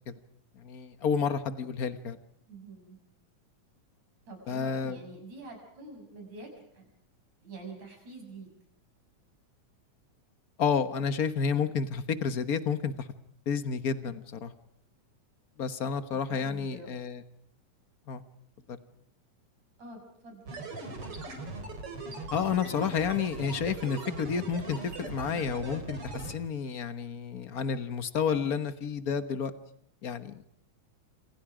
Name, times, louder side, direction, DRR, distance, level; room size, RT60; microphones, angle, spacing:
voice 1, 0.6-2.2 4.5-5.0 10.6-13.1 13.5-14.5 15.6-17.2 18.1-18.2 18.7-18.8 22.3-29.5 30.0-30.4, left 6 dB, 65° left, 11 dB, 0.8 m, -30 dB
voice 2, 2.5-3.0 4.3-6.9 7.4-8.5 16.3-17.0 19.8-20.5, right 2 dB, 60° right, 3 dB, 8.1 m, -46 dB
sound 1, 20.5-26.3, right 2 dB, 45° right, 4.7 m, -39 dB
28.0 x 27.0 x 5.0 m, 0.68 s
omnidirectional pair, 3.5 m